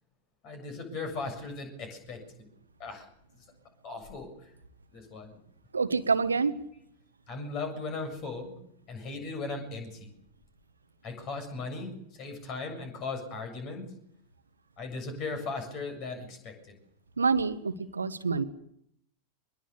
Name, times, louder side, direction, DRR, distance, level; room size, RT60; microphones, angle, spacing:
voice 1, 0.4-2.5 2.8-3.1 3.8-4.5 4.9-5.4 7.3-8.6 8.9-10.1 11.0-13.9 14.8-16.8, left 3 dB, 40° left, 7 dB, 7.2 m, -38 dB
voice 2, 5.7-6.6 17.2-18.4, right 4 dB, 75° right, 12 dB, 1.4 m, -27 dB
23.0 x 21.5 x 7.0 m, 0.73 s
figure-of-eight pair, 90°, 0 cm